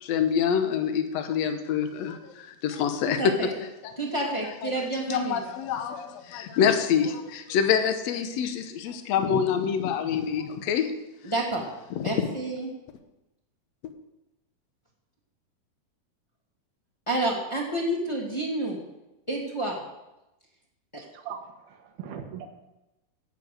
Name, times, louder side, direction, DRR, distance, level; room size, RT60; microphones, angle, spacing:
voice 1, 0.0-3.5 3.8-3.9 4.3-4.4 4.6-4.7 5.1-10.9 12.0-12.3, left 7 dB, 65° left, 7 dB, 1.8 m, -26 dB
voice 2, 4.0-5.4 11.2-11.6 12.0-12.7 17.1-18.8 19.3-19.8, right 1 dB, 10° left, -2 dB, 1.4 m, -29 dB
voice 3, 21.0-22.5, right 8 dB, 90° right, 4 dB, 3.2 m, -40 dB
16.0 x 6.9 x 6.5 m, 0.96 s
omnidirectional pair, 4.2 m